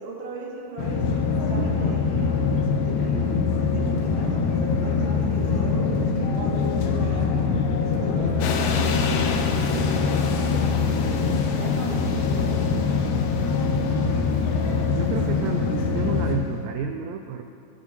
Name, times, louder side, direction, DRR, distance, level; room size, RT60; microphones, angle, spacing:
voice 1, 0.0-2.4 2.8-3.4 3.7-7.5 7.8-9.9 10.3-13.0, right 2 dB, 70° right, -4 dB, 3.7 m, -37 dB
sound 1, 0.8-16.4, left 5 dB, 75° left, 2.6 m, -23 dB
sound 2, 8.4-15.5, left 4 dB, 90° left, 3.0 m, -33 dB
voice 2, 14.6-17.4, right 7 dB, 90° right, 4 dB, 2.0 m, -31 dB
21.5 x 8.6 x 2.9 m, 2.4 s
omnidirectional pair, 4.7 m